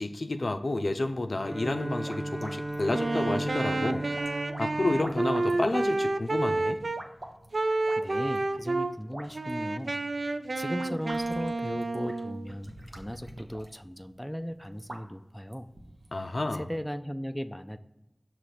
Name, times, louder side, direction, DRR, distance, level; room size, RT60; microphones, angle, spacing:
voice 1, 0.0-4.0 4.6-6.8 16.1-16.7, left 2 dB, 70° left, 8 dB, 0.4 m, -30 dB
Bowed string instrument, 1.3-5.9, right 1 dB, 25° right, 1.0 m, -36 dB
sound 1, 1.8-16.2, right 1 dB, 55° right, 0.9 m, -48 dB
Wind instrument woodwind instrument, 2.8-7.0 7.5-8.9 9.3-12.6, right 2 dB, 85° right, 0.3 m, -30 dB
voice 2, 7.7-15.7 16.5-17.8, equal, 5° left, 9 dB, 0.4 m, -37 dB
6.3 x 3.0 x 5.8 m, 0.89 s
wide cardioid pair, 40°, 0 cm